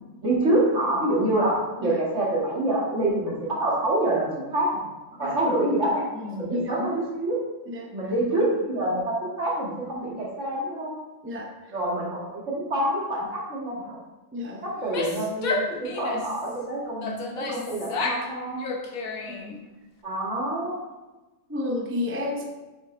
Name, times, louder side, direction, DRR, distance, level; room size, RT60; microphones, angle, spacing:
voice 1, 0.2-4.8 5.2-6.9 7.2-7.4 7.9-10.9 11.7-14.0 14.6-18.7 20.0-20.8, right 1 dB, 50° right, -6 dB, 2.5 m, -26 dB
voice 2, 6.1-6.9 7.7-8.1 11.2-11.5 14.3-14.6 19.3-19.6 21.5-22.4, left 2 dB, 15° right, 1 dB, 0.4 m, -31 dB
Female speech woman speaking / Yell, 14.7-16.4 17.0-18.3 18.6-19.6, left 3 dB, 70° left, 1.3 m, -31 dB
7.8 x 5.3 x 3.4 m, 1.1 s
omnidirectional pair, 1.6 m